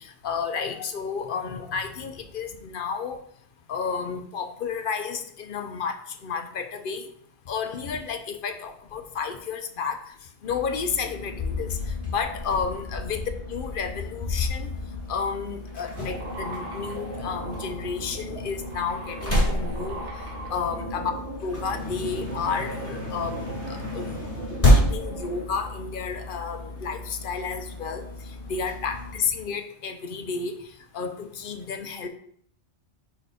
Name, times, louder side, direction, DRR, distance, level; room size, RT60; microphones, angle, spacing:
voice 1, 0.2-3.2 3.7-6.0 6.2-7.1 7.5-10.0 10.4-11.7 12.1-13.2 13.5-14.7 15.1-20.0 20.5-21.1 21.4-24.1 24.5-28.1 28.5-30.5 30.9-32.1, left 5 dB, 55° left, 7 dB, 0.7 m, -31 dB
sound 1, 10.4-29.1, left 1 dB, 10° left, 2.3 m, -30 dB
sound 2, 16.0-25.4, right 1 dB, 75° right, 1.9 m, -38 dB
4.5 x 4.3 x 4.9 m, 0.64 s
omnidirectional pair, 1.2 m